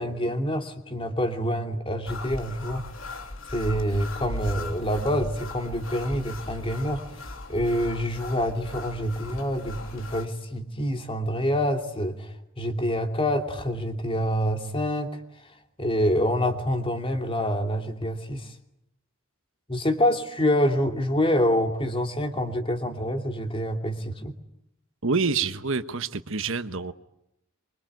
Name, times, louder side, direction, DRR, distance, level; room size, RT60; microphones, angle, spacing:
voice 1, 0.0-2.8 3.5-7.0 7.5-15.1 15.8-18.5 19.7-24.3, equal, 25° left, 2.8 m, -26 dB
sound 1, 2.1-10.3, left 2 dB, 75° left, 3.4 m, -38 dB
voice 2, 25.0-26.9, right 4 dB, 70° right, 1.2 m, -27 dB
25.0 x 24.5 x 9.4 m
head